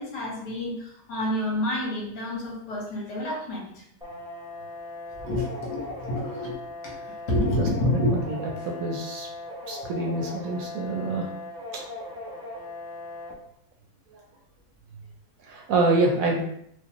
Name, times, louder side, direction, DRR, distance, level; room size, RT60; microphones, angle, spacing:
voice 1, 0.0-3.8 5.2-6.5 6.8-8.5, left 1 dB, 85° left, -3 dB, 1.6 m, -29 dB
sound 1, 4.0-13.3, left 2 dB, 5° right, 0.5 m, -38 dB
voice 2, 7.6-9.3 9.7-11.3 11.7-11.8 14.1-14.2 15.4-16.4, right 2 dB, 70° right, 1 dB, 0.9 m, -27 dB
4.6 x 2.0 x 2.9 m, 0.71 s
omnidirectional pair, 1.7 m